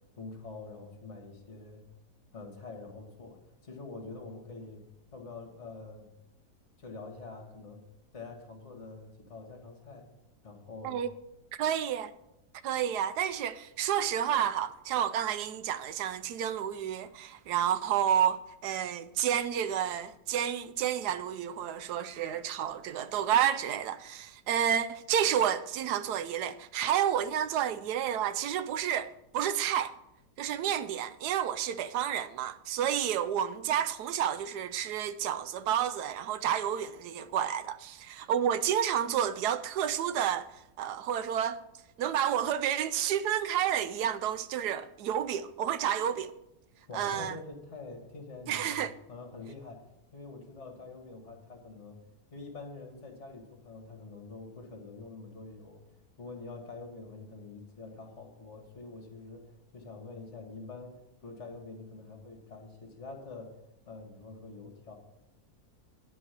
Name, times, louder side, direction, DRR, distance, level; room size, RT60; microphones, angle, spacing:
voice 1, 0.2-1.8 2.3-4.9 5.1-6.1 6.8-7.8 8.1-10.1 10.4-11.0 46.9-52.0 52.3-55.8 56.2-63.6 63.9-65.0, left 3 dB, 45° left, 2.1 m, -46 dB
voice 2, 11.5-12.1 12.6-30.0 30.4-41.6 42.0-46.3 46.9-47.4 48.5-48.9, right 9 dB, 80° right, 1.1 m, -30 dB
10.0 x 5.4 x 8.1 m
omnidirectional pair, 1.7 m